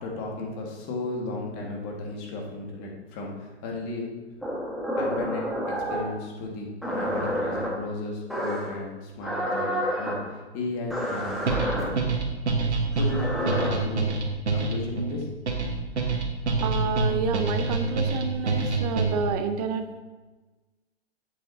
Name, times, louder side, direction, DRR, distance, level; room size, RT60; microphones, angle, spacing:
voice 1, 0.0-4.1 5.0-12.1 12.7-14.1 14.5-15.3, left 2 dB, 35° left, -1 dB, 1.7 m, -34 dB
sound 1, 4.4-6.1 6.8-7.7 8.3-8.7 9.2-10.1 10.9-11.8 12.9-13.7, equal, ahead, 1.5 m, -29 dB
sound 2, 11.5-19.4, right 3 dB, 85° right, 1.4 m, -26 dB
voice 2, 16.6-20.0, right 5 dB, 35° right, 8 dB, 0.6 m, -29 dB
7.9 x 7.3 x 2.7 m, 1.2 s
hypercardioid pair, 125°, 33 cm